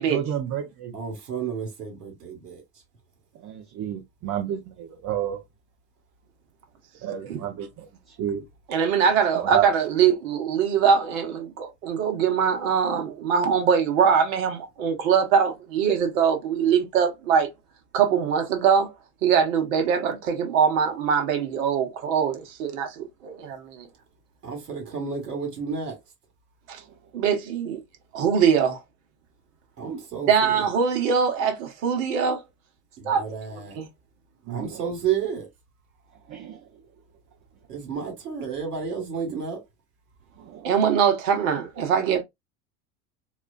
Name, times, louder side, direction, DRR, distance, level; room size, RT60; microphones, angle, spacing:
voice 1, 0.1-1.0 3.3-5.4 7.0-8.4 9.5-9.7 34.5-34.8 36.3-36.7 40.4-40.7, right 10 dB, 35° right, 0.9 m, -30 dB
voice 2, 0.9-2.6 24.4-26.0 29.8-30.7 33.0-33.8 34.5-35.5 37.7-39.6, right 6 dB, 85° right, 1.5 m, -31 dB
voice 3, 8.7-17.5 17.9-18.9 19.2-23.9 26.7-26.8 27.1-27.8 28.1-28.8 30.3-32.4 33.0-33.2 33.8-33.9 40.6-42.2, right 7 dB, 60° right, 1.3 m, -22 dB
4.2 x 2.5 x 2.4 m
figure-of-eight pair, 75°, 46 cm